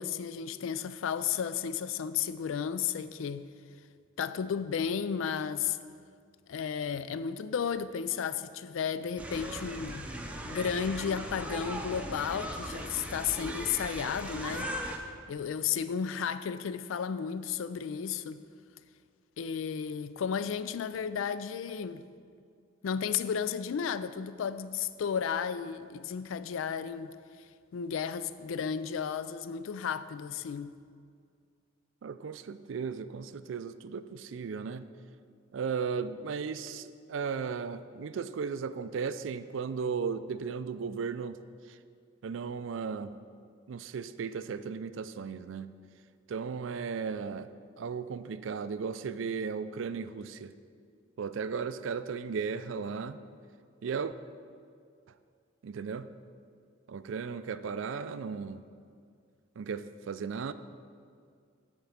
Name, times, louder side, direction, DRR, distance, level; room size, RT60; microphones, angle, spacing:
voice 1, 0.0-3.5 4.2-5.8 6.5-10.1 10.5-14.9 15.3-18.4 19.4-22.0 22.8-27.2 27.7-30.7, left 7 dB, 80° left, 0.4 m, -33 dB
sound 1, 9.2-15.0, right 1 dB, 5° right, 0.7 m, -38 dB
voice 2, 32.0-34.9 35.5-41.4 41.7-41.8 42.2-43.2 43.7-45.7 46.3-47.5 47.8-50.5 51.2-53.2 53.8-54.1 55.6-56.1 56.9-58.6 59.6-60.5, right 5 dB, 70° right, 0.4 m, -35 dB
10.5 x 4.4 x 7.1 m
head